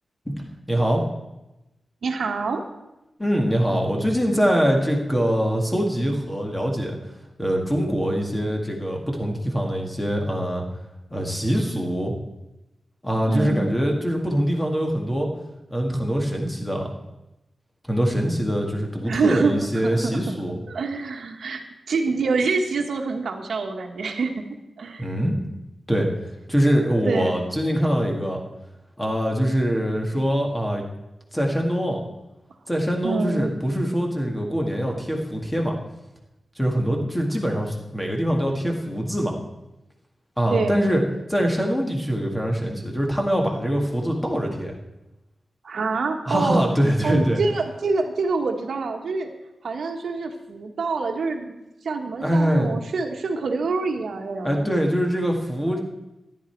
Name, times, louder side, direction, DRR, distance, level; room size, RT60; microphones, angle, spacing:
voice 1, 0.3-1.0 3.2-7.0 7.4-10.6 11.1-12.1 13.0-15.3 15.7-16.9 17.9-20.6 25.0-25.4 25.9-26.1 26.5-28.4 29.0-30.8 31.3-32.0 32.7-35.7 36.6-39.4 40.4-41.0 41.3-44.8 46.3-47.4 52.2-52.7 54.4-55.8, equal, 10° left, 1 dB, 1.8 m, -23 dB
voice 2, 2.0-2.6 13.3-13.7 19.1-20.1 20.7-21.6 21.9-24.4 24.8-25.1 27.0-27.4 33.0-33.5 40.5-40.9 45.6-46.6 47.0-49.3 49.6-51.5 51.8-54.7, right 4 dB, 75° right, 4 dB, 1.3 m, -26 dB
14.0 x 10.5 x 4.5 m, 0.97 s
wide cardioid pair, 175°, 0 cm